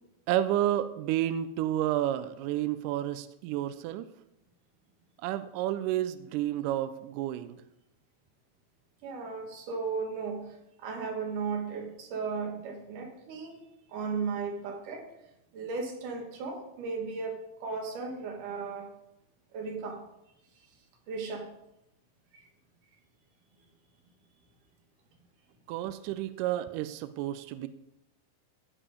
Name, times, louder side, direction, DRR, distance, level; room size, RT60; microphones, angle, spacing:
voice 1, 0.3-4.1 5.2-7.6 25.7-27.7, right 12 dB, 85° right, 12 dB, 1.8 m, -30 dB
voice 2, 9.0-13.6 13.9-15.1 15.5-18.9 19.5-20.0 21.1-21.5 22.3-22.5, right 4 dB, 65° right, 3 dB, 2.8 m, -36 dB
15.0 x 5.0 x 5.0 m, 0.86 s
omnidirectional pair, 4.2 m